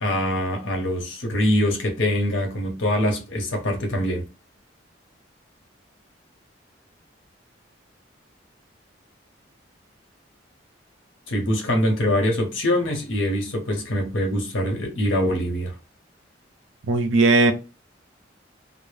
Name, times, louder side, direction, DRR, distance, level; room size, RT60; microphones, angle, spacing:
voice 1, 0.0-4.2 11.3-15.7, left 1 dB, 85° left, 0.8 m, -24 dB
voice 2, 16.9-17.5, right 3 dB, 85° right, 0.5 m, -17 dB
2.1 x 2.0 x 3.1 m
head